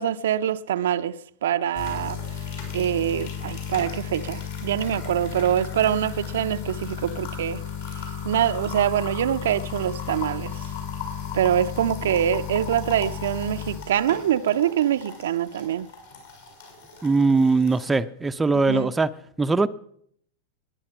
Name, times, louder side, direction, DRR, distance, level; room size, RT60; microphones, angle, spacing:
voice 1, 0.0-2.2 2.7-7.6 8.2-10.6 11.3-15.9 18.7-18.9, right 10 dB, 60° right, 0.6 m, -24 dB
sound 1, 1.7-17.8, left 7 dB, 60° left, 6.2 m, -34 dB
voice 2, 17.0-19.1 19.4-19.7, right 3 dB, 10° right, 0.6 m, -21 dB
20.5 x 10.5 x 5.8 m
figure-of-eight pair, 90°, 0 cm